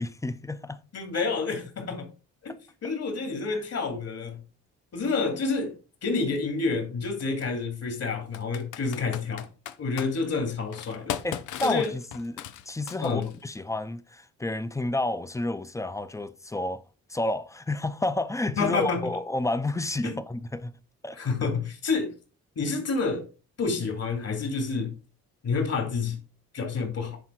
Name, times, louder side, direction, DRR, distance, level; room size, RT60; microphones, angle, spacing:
voice 1, 0.0-0.8 3.5-3.6 11.2-16.8 17.1-20.7 21.0-21.2, left 2 dB, 10° left, 0.8 m, -30 dB
voice 2, 0.9-2.1 2.4-2.5 2.8-4.4 4.9-5.7 6.0-9.5 9.8-11.2 11.6-11.9 13.0-13.3 18.6-19.1 20.0-20.2 21.1-22.1 22.6-23.3 23.6-24.9 25.4-26.2 26.5-27.2, left 4 dB, 55° left, 2.9 m, -28 dB
Computer keyboard, 5.5-5.6 7.2-7.5 8.3-10.1 10.7-13.4, left 11 dB, 80° left, 0.7 m, -37 dB
10.0 x 4.1 x 4.6 m
cardioid pair, 90°, 30 cm